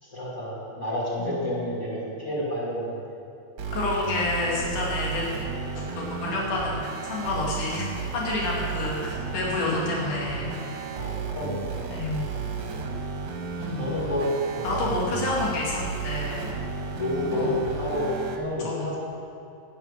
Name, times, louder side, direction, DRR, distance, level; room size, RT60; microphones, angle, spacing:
voice 1, 0.0-3.0 10.9-11.8 12.3-12.5 13.8-15.1 16.9-19.0, left 1 dB, 25° left, -7 dB, 4.0 m, -30 dB
voice 2, 1.2-1.5 3.7-5.3 5.8-10.5 11.9-12.3 13.6-14.0 14.6-16.5 17.3-17.6 18.6-18.9, left 2 dB, 80° left, -4 dB, 3.7 m, -29 dB
sound 1, 3.6-18.4, right 5 dB, 55° right, 1.7 m, -33 dB
11.5 x 10.5 x 7.4 m, 2.6 s
omnidirectional pair, 3.5 m